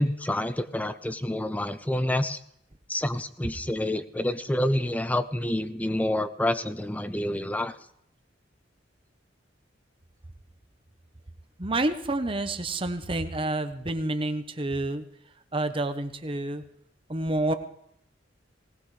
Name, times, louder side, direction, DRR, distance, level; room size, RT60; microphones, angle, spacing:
voice 1, 0.0-2.4 2.9-7.7, left 1 dB, 10° left, 12 dB, 0.6 m, -28 dB
voice 2, 11.6-15.0 15.5-16.6 17.1-17.5, right 2 dB, 30° right, 9 dB, 0.9 m, -28 dB
19.0 x 19.0 x 3.3 m, 0.74 s
head